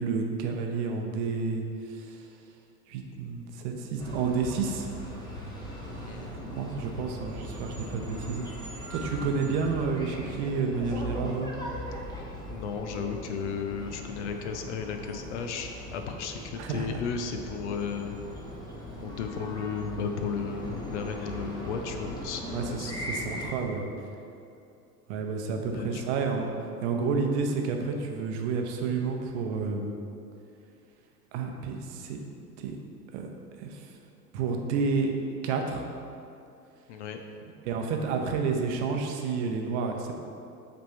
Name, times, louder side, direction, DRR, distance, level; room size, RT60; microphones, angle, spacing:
voice 1, 0.0-2.2 2.9-4.9 6.4-8.5 8.9-11.5 16.6-17.0 22.5-23.9 25.1-26.5 26.8-29.9 31.3-32.2 32.6-32.8 33.1-33.3 33.6-33.9 34.3-35.1 35.4-35.9 37.6-40.1, right 5 dB, 45° right, 3 dB, 0.8 m, -30 dB
sound 1, 4.0-23.5, equal, 10° left, 0.9 m, -39 dB
voice 2, 6.0-6.6 12.5-18.2 19.0-22.9 25.7-26.0 36.9-37.2, left 6 dB, 45° left, 5 dB, 0.5 m, -34 dB
7.5 x 3.5 x 4.3 m, 2.6 s
figure-of-eight pair, 80°, 50 cm